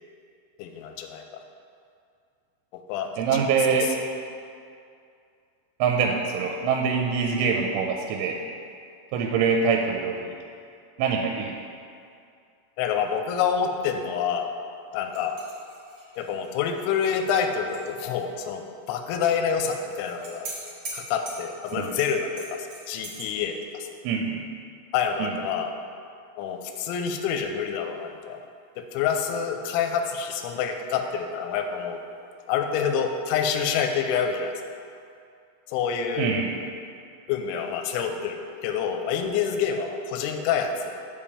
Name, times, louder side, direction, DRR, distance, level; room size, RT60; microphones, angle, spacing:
voice 1, 0.6-1.4 2.9-3.5 12.8-14.5 14.9-15.4 16.2-20.5 20.9-23.9 24.9-25.7 26.4-28.4 28.8-32.0 32.5-34.5 35.7-36.3 37.3-40.9, left 7 dB, 85° left, 5 dB, 2.7 m, -27 dB
voice 2, 3.2-4.0 5.8-8.4 9.1-10.4 11.0-11.5 21.8-21.9 24.0-24.5 25.2-25.3 36.2-36.5, right 5 dB, 85° right, 2 dB, 3.0 m, -24 dB
sound 1, 15.1-17.9 18.2-18.3 19.7-23.3, right 2 dB, 65° right, 1.4 m, -42 dB
7.1 x 5.1 x 7.0 m, 2.4 s
omnidirectional pair, 5.8 m